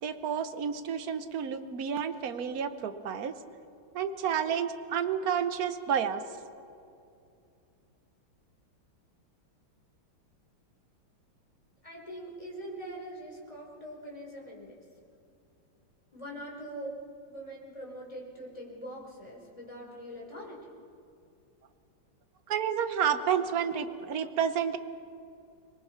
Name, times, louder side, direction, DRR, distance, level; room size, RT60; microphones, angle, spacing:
voice 1, 0.0-3.3 3.9-6.2 22.5-24.8, right 8 dB, 50° right, 10 dB, 1.3 m, -30 dB
voice 2, 11.8-14.8 16.1-17.0 17.2-20.7, right 1 dB, 15° left, -2 dB, 4.7 m, -43 dB
25.5 x 22.0 x 5.8 m, 2.5 s
omnidirectional pair, 2.3 m